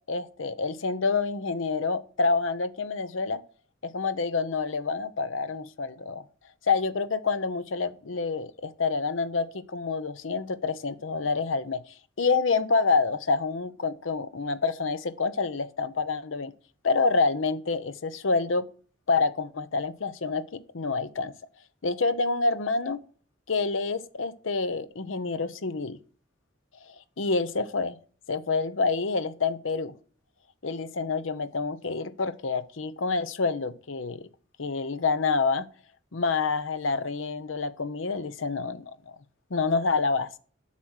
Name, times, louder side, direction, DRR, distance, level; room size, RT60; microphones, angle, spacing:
voice 1, 0.1-3.4 3.8-6.2 6.7-11.8 12.2-16.5 16.8-18.7 19.1-21.3 21.8-23.0 23.5-26.0 26.9-28.0 28.3-29.9 30.6-34.3 34.6-35.7 36.1-39.1 39.5-40.3, left 4 dB, 80° left, 0.8 m, -27 dB
8.3 x 5.9 x 6.4 m
head